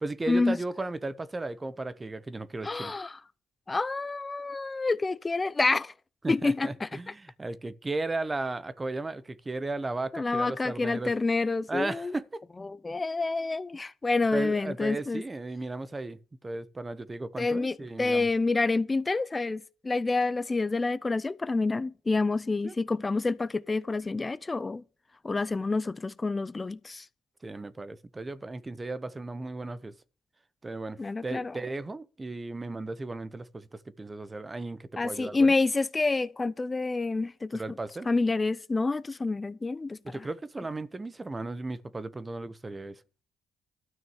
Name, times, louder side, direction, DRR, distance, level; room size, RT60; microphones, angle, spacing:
voice 1, 0.0-2.9 6.2-11.1 11.7-12.4 14.3-18.3 22.6-22.7 27.4-29.9 30.6-35.5 37.5-38.1 40.0-43.0, right 2 dB, 20° right, 0.9 m, -35 dB
voice 2, 2.6-3.2 3.7-5.9 6.3-6.9 10.1-12.1 12.6-15.2 17.4-24.8 25.2-27.1 31.0-31.5 35.0-37.6 38.1-40.0, left 3 dB, 25° left, 0.5 m, -28 dB
12.5 x 6.2 x 7.1 m
cardioid pair, 90°, 0 cm